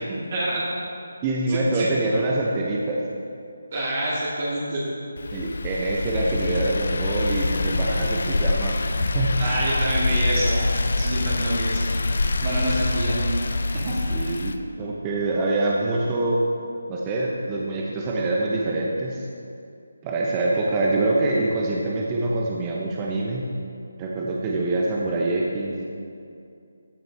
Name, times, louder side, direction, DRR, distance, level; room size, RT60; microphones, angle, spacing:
voice 1, 0.1-0.6 1.5-1.9 3.7-4.8 9.4-10.7 11.0-11.8 12.4-13.3 13.7-14.4, right 1 dB, 40° right, -6 dB, 1.9 m, -27 dB
voice 2, 1.2-3.0 5.3-9.4 14.1-16.4 16.9-19.3 20.0-23.4 24.0-25.8, right 2 dB, 20° right, -3 dB, 0.9 m, -25 dB
sound 1, 5.2-14.6, left 2 dB, 60° left, 0.6 m, -25 dB
14.5 x 7.8 x 3.4 m, 2.6 s
figure-of-eight pair, 155°, 0 cm